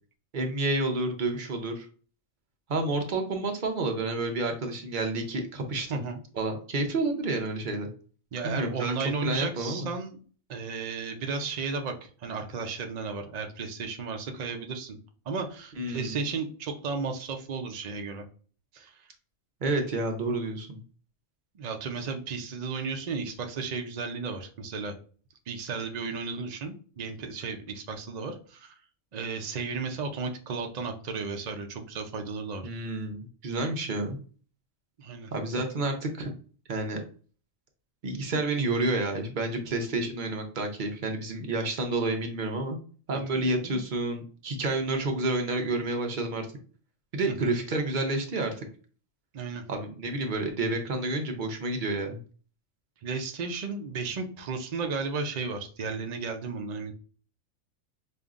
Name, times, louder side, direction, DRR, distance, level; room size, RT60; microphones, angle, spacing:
voice 1, 0.3-1.9 2.7-6.0 6.3-7.9 8.4-9.9 15.8-16.2 19.6-20.8 32.6-34.2 35.3-36.3 36.7-37.0 38.0-42.8 43.1-46.5 47.1-48.6 49.7-52.2, right 2 dB, 45° right, 3 dB, 0.7 m, -29 dB
voice 2, 8.3-10.2 10.5-15.0 15.3-18.2 18.7-19.1 21.5-24.9 25.5-28.7 29.1-32.7 35.0-35.3 43.3-43.8 47.3-47.6 49.3-49.6 53.0-56.9, right 4 dB, 75° right, 3 dB, 0.3 m, -34 dB
5.1 x 2.5 x 2.4 m, 0.40 s
omnidirectional pair, 1.4 m